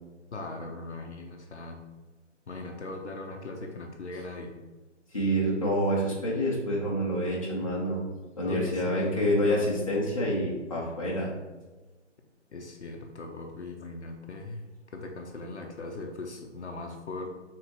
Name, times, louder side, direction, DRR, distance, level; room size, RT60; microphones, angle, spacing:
voice 1, 0.3-1.8 2.5-4.6 8.4-9.7 12.5-14.6 14.9-17.3, left 2 dB, 65° left, 2 dB, 0.7 m, -39 dB
voice 2, 5.1-8.0 8.4-11.3, equal, 25° left, -5 dB, 0.8 m, -27 dB
4.8 x 3.6 x 3.0 m, 1.2 s
figure-of-eight pair, 170°, 37 cm